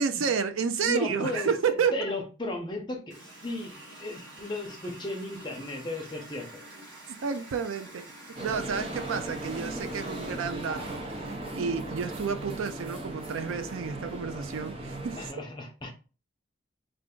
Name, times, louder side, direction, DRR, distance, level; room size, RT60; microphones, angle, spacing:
voice 1, 0.0-1.9 7.2-8.1 8.4-15.2, right 6 dB, 85° right, 0.4 m, -30 dB
voice 2, 0.8-1.5 1.9-6.6 15.2-15.9, left 2 dB, 20° left, 0.7 m, -35 dB
Water tap faucet, 3.1-11.6, right 1 dB, 60° right, 1.3 m, -48 dB
sound 1, 8.4-15.3, right 1 dB, 30° right, 0.6 m, -37 dB
3.3 x 2.5 x 3.7 m
head